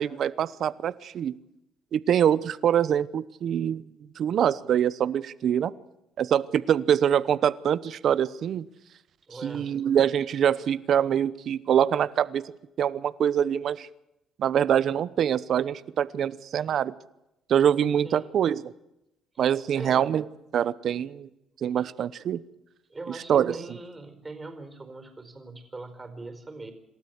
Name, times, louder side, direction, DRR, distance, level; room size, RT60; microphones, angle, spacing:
voice 1, 0.0-1.3 1.9-3.8 4.2-5.7 6.2-8.7 9.4-12.4 12.8-13.9 14.4-16.9 17.5-18.6 19.4-20.2 20.5-21.3 21.6-22.4 23.3-23.6, right 9 dB, 60° right, 17 dB, 0.9 m, -24 dB
voice 2, 9.3-9.7 18.0-18.3 19.3-19.4 19.7-20.1 21.7-21.9 22.9-26.7, right 3 dB, 20° right, 8 dB, 4.5 m, -41 dB
27.5 x 13.0 x 8.2 m, 0.88 s
cardioid pair, 95°, 0 cm